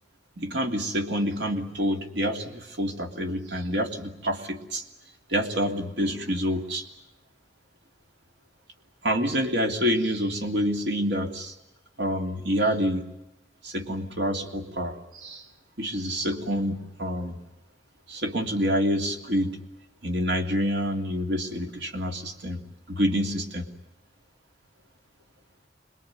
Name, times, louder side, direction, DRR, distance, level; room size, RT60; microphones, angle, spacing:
voice 1, 0.4-4.8 5.3-6.8 9.0-11.5 12.0-13.1 13.6-15.4 15.8-17.4 18.1-19.6 20.0-22.6 22.9-23.7, equal, 80° right, 4 dB, 3.0 m, -27 dB
26.5 x 21.5 x 9.4 m, 0.90 s
head